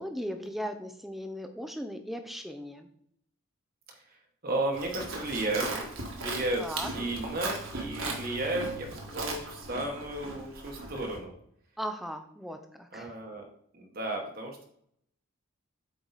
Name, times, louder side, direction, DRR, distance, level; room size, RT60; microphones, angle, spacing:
voice 1, 0.0-2.9 6.6-6.9 11.8-13.2, equal, ahead, 6 dB, 0.6 m, -37 dB
voice 2, 4.4-5.7 6.1-11.3 12.9-13.5 13.7-14.6, right 2 dB, 40° right, 1 dB, 1.2 m, -34 dB
Livestock farm animals working animals, 4.7-11.2, right 2 dB, 65° right, 1.6 m, -38 dB
8.2 x 4.7 x 4.0 m, 0.69 s
head